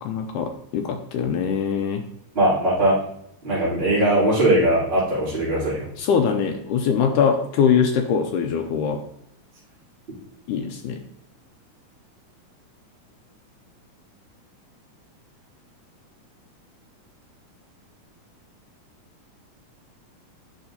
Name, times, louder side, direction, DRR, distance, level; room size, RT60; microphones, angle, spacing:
voice 1, 0.0-2.0 6.0-9.0 10.5-11.0, left 7 dB, 80° left, 5 dB, 1.8 m, -22 dB
voice 2, 2.3-3.0 3.4-5.8, right 1 dB, 15° right, -12 dB, 3.0 m, -20 dB
8.7 x 5.8 x 2.7 m, 0.72 s
omnidirectional pair, 4.1 m